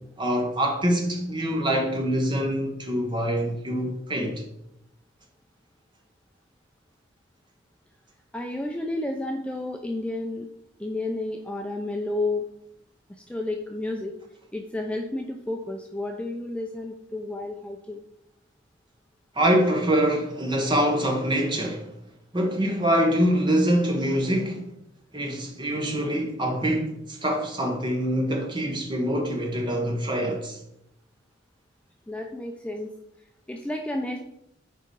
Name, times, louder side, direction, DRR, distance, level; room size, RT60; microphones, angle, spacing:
voice 1, 0.2-4.4 19.3-21.9 22.3-24.6 25.1-30.6, equal, 25° right, 1.3 m, -25 dB
voice 2, 8.3-10.5 10.8-12.4 13.3-14.1 14.5-18.0 32.1-32.9 33.5-34.2, left 2 dB, 5° left, 0.5 m, -31 dB
6.9 x 4.9 x 4.7 m
head